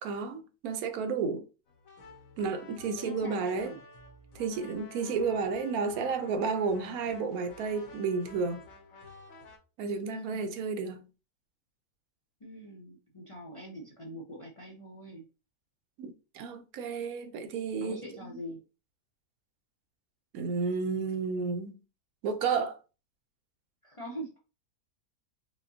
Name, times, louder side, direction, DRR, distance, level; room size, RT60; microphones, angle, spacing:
voice 1, 0.0-1.4 2.4-3.7 4.3-8.6 9.8-11.1 16.0-18.0 20.3-21.8 22.2-22.8, right 5 dB, 80° right, 1.1 m, -32 dB
sound 1, 1.7-9.6, left 2 dB, 70° left, 1.2 m, -51 dB
voice 2, 3.0-3.8 10.0-10.6 12.4-15.3 17.8-18.6 23.8-24.4, equal, 30° left, 0.6 m, -43 dB
5.0 x 2.2 x 2.7 m
omnidirectional pair, 1.6 m